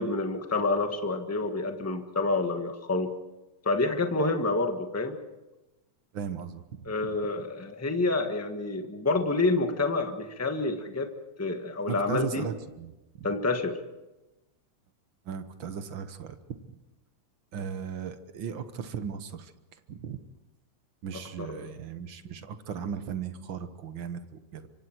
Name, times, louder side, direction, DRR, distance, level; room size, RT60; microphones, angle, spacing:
voice 1, 0.0-3.1 3.6-5.2 6.8-11.1 11.4-12.5 13.2-13.8 21.1-21.7, left 3 dB, 20° left, 5 dB, 0.3 m, -28 dB
voice 2, 6.1-7.1 11.9-13.3 15.2-16.4 17.5-19.5 19.9-20.2 21.0-24.7, right 7 dB, 55° right, 10 dB, 1.5 m, -37 dB
25.0 x 25.0 x 4.6 m, 1.0 s
omnidirectional pair, 3.3 m